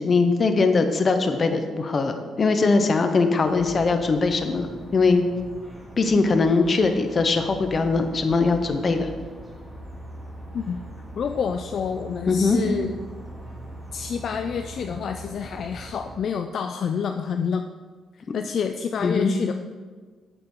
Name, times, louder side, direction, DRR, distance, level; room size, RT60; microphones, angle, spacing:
voice 1, 0.0-5.2 6.0-9.1 12.3-12.6 18.3-18.4 19.0-19.3, left 4 dB, 40° left, 7 dB, 0.9 m, -21 dB
sound 1, 3.4-16.2, right 1 dB, ahead, 2.7 m, -41 dB
voice 2, 11.2-13.0 13.9-17.7 18.3-19.5, left 6 dB, 60° left, 6 dB, 0.4 m, -28 dB
8.9 x 6.8 x 3.8 m, 1.5 s
cardioid pair, 90°, 0 cm